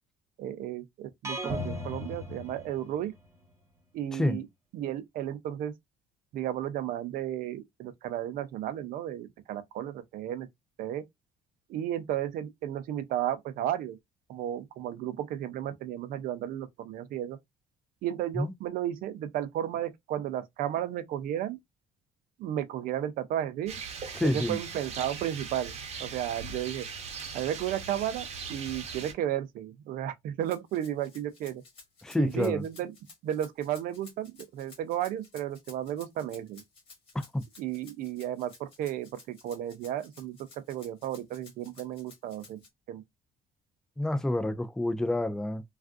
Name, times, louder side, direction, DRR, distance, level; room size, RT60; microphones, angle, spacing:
voice 1, 0.4-3.1 3.9-4.4 4.7-5.7 6.3-10.5 10.8-11.0 11.7-14.0 14.3-17.4 18.0-21.6 22.4-23.8 24.2-26.9 27.3-31.6 32.2-32.9 33.2-36.6 37.6-40.4 40.7-42.6 42.9-43.0, right 11 dB, 75° right, 0.6 m, -33 dB
sound 1, 1.2-3.2, equal, 20° right, 1.0 m, -36 dB
Rain, 23.7-29.1, right 5 dB, 45° right, 0.9 m, -40 dB
voice 2, 24.1-24.6 32.0-32.6 37.1-37.4 44.0-45.6, left 1 dB, 5° left, 0.4 m, -28 dB
Rattle (instrument), 30.4-42.7, left 4 dB, 40° left, 1.7 m, -54 dB
3.4 x 2.4 x 2.4 m
cardioid pair, 120°, 15 cm